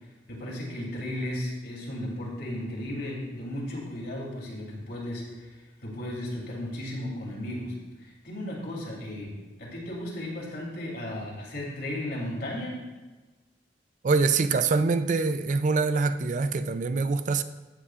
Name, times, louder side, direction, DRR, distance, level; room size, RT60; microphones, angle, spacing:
voice 1, 0.3-7.7 8.0-9.3 9.6-12.8, left 1 dB, 60° left, 3.0 m, -35 dB
voice 2, 14.0-17.4, right 4 dB, 45° right, 0.4 m, -24 dB
15.0 x 8.2 x 2.5 m
head